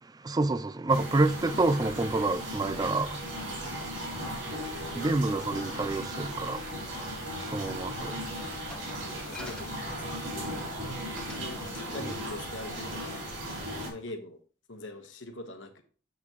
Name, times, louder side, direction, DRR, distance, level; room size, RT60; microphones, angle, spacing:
voice 1, 0.0-8.4 9.1-9.4 12.0-12.1, right 2 dB, 20° right, 0.3 m, -30 dB
sound 1, 0.9-13.9, equal, 85° right, 2.6 m, -37 dB
voice 2, 4.4-5.1 9.0-10.6 11.3-13.0 13.8-14.4 14.7-15.8, left 2 dB, 80° left, 1.2 m, -43 dB
Glass, 8.7-10.5 11.2-11.5 11.7-12.0, left 1 dB, 5° left, 0.9 m, -46 dB
7.7 x 5.8 x 3.0 m
head